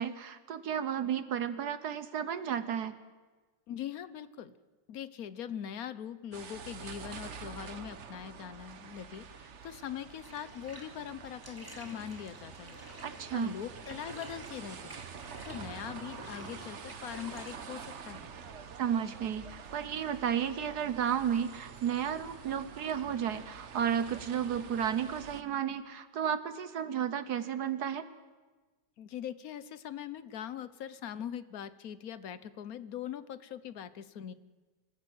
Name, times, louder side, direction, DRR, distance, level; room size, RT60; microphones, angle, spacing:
voice 1, 0.0-2.9 13.0-13.5 18.8-28.0, right 8 dB, 65° right, 12 dB, 1.4 m, -33 dB
voice 2, 3.7-4.5 4.9-12.8 13.3-18.3 29.0-34.3, left 9 dB, 60° left, 14 dB, 1.2 m, -42 dB
sound 1, 6.3-25.4, right 6 dB, 45° right, 1.1 m, -47 dB
Bathtub (filling or washing), 10.2-21.8, right 1 dB, 10° right, 2.5 m, -52 dB
25.0 x 15.0 x 7.9 m, 1.3 s
omnidirectional pair, 2.0 m